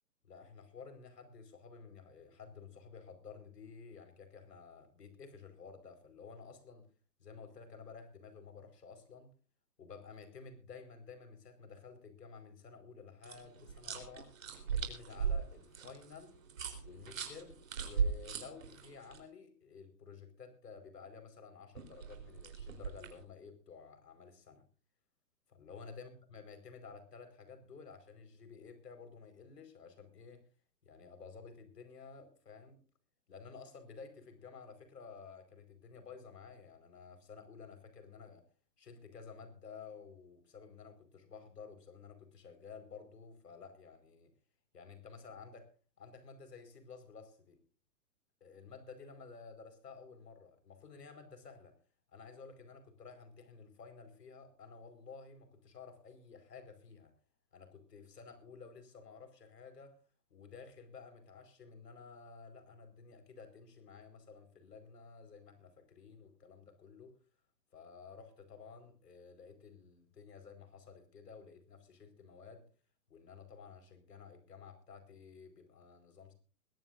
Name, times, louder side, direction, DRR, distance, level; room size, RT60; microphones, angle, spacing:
voice 1, 0.2-6.9 7.2-9.3 9.8-14.3 14.7-16.4 16.8-24.6 25.5-30.4 30.8-32.8 33.3-38.4 38.8-44.3 44.7-45.7 46.0-47.6 48.4-51.8 52.1-57.1 57.5-60.0 60.3-67.2 67.7-72.7 73.1-76.3, left 5 dB, 80° left, 9 dB, 5.0 m, -53 dB
sound 1, 13.2-19.2 21.8-23.2, right 6 dB, 55° right, 4.0 m, -38 dB
21.0 x 16.5 x 2.6 m, 0.37 s
hypercardioid pair, 180°, 48 cm